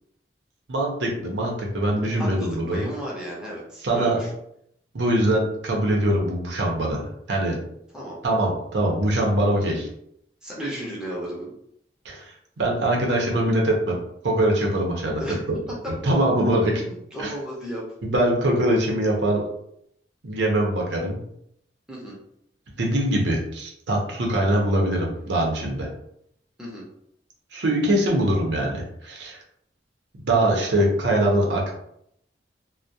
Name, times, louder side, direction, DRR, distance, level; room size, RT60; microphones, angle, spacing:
voice 1, 0.7-2.8 3.8-4.2 4.9-7.6 8.2-9.9 12.0-12.2 12.6-14.0 14.2-15.4 16.0-16.8 17.2-17.3 18.0-19.4 20.2-21.2 22.8-25.9 27.5-29.4 30.2-31.7, right 1 dB, 80° right, -1 dB, 0.6 m, -23 dB
voice 2, 2.1-4.3 7.9-8.2 10.4-11.5 15.2-15.4 16.6-17.8 21.9-22.2 26.6-26.9, equal, 5° right, -5 dB, 0.5 m, -34 dB
2.2 x 2.1 x 2.6 m, 0.73 s
head